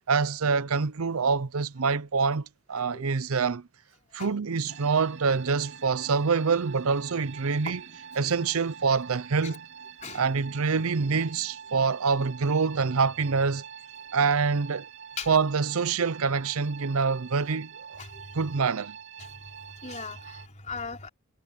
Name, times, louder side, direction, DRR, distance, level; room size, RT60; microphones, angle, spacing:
voice 1, 0.1-3.7 4.1-7.9 8.1-9.7 10.1-13.6 14.1-14.9 15.3-18.0 18.3-19.0, right 5 dB, 85° right, 0.7 m, -26 dB
voice 2, 2.7-3.0 4.2-4.4 8.2-8.3 9.4-9.6 10.0-10.3 15.2-15.3 18.0-18.1 19.2-19.3 19.8-21.1, left 5 dB, 35° left, 4.2 m, -39 dB
sound 1, 4.7-20.5, right 7 dB, 55° right, 2.9 m, -45 dB
head